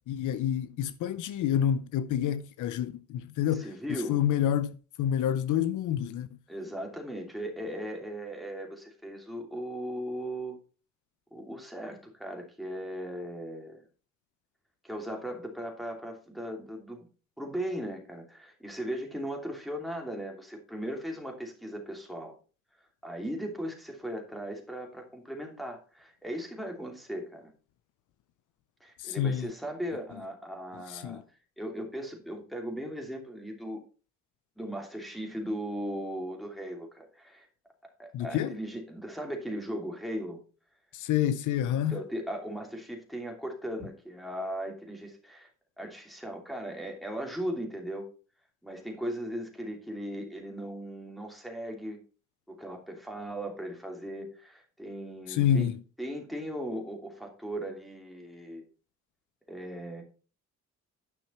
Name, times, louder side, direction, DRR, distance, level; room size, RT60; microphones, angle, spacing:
voice 1, 0.1-3.7 4.1-6.3 29.0-29.5 30.9-31.2 38.1-38.6 40.9-41.9 55.3-55.8, left 10 dB, 80° left, 0.7 m, -28 dB
voice 2, 3.5-4.2 6.5-10.6 11.3-13.8 14.8-17.1 17.4-22.3 23.0-27.5 28.8-31.2 31.6-33.8 34.6-37.5 38.0-40.4 41.9-45.5 45.8-48.1 48.6-52.0 52.5-55.7 56.0-58.6 59.5-60.0, equal, ahead, 2.8 m, -38 dB
10.0 x 5.8 x 4.3 m
cardioid pair, 90°, 30 cm